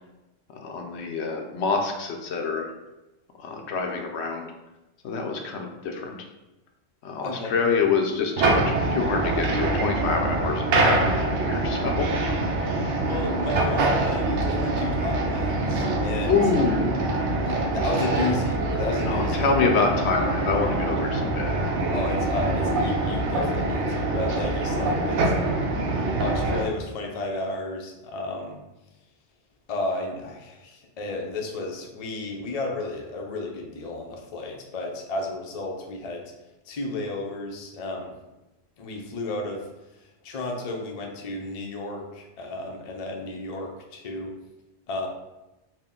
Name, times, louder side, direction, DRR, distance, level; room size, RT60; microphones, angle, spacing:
voice 1, 0.5-2.7 3.4-4.5 5.0-6.2 7.0-12.1 12.7-12.9 16.3-17.0 19.1-21.5, left 4 dB, 75° left, 3 dB, 0.9 m, -26 dB
voice 2, 7.2-7.8 13.0-16.4 17.4-19.5 21.9-25.7 26.2-28.6 29.7-36.3 36.7-38.1 38.8-39.7 40.2-44.4 44.9-45.1, left 2 dB, 45° left, 1 dB, 0.5 m, -32 dB
sound 1, 8.4-26.6, right 2 dB, 90° right, 0.9 m, -25 dB
4.2 x 2.1 x 3.6 m, 1.0 s
omnidirectional pair, 1.1 m